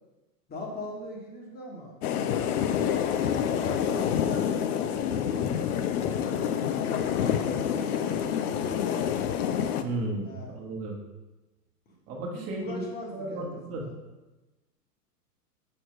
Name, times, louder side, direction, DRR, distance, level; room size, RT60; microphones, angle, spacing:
voice 1, 0.5-1.9 2.4-5.6 6.0-9.1 10.2-10.6 12.3-13.9, left 1 dB, 20° left, -1 dB, 1.2 m, -42 dB
sound 1, 2.0-9.8, left 8 dB, 65° left, 0.6 m, -27 dB
voice 2, 9.8-11.0 12.1-12.9 13.1-13.9, right 2 dB, 30° right, -1 dB, 1.3 m, -34 dB
6.5 x 4.5 x 3.1 m, 1.1 s
hypercardioid pair, 120°, 48 cm